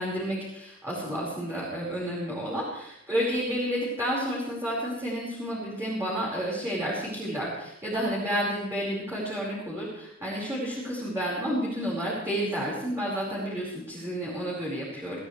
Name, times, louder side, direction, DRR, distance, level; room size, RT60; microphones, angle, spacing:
voice 1, 0.0-15.2, equal, 15° right, -7 dB, 5.1 m, -30 dB
25.0 x 14.5 x 3.4 m, 0.78 s
head